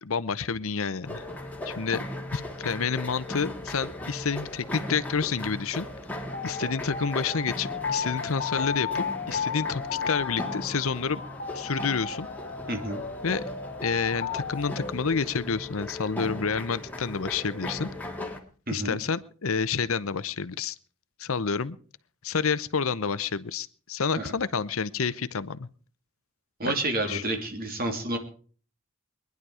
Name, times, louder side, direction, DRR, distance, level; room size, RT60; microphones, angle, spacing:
voice 1, 0.0-1.2 1.7-2.0 2.3-5.9 6.4-11.2 11.5-12.3 13.2-13.4 13.8-17.9 18.7-20.7 21.2-21.8 22.2-25.7 26.7-26.8 27.1-27.2, left 5 dB, 70° left, 16 dB, 0.7 m, -29 dB
sound 1, 1.0-18.4, left 1 dB, 5° left, 2.1 m, -38 dB
sound 2, 6.3-14.9, left 6 dB, 40° left, 0.8 m, -34 dB
voice 2, 12.7-13.0 18.7-19.0 24.2-24.3 26.6-28.2, right 1 dB, 40° right, 4 dB, 3.0 m, -29 dB
22.5 x 11.0 x 4.9 m, 0.42 s
head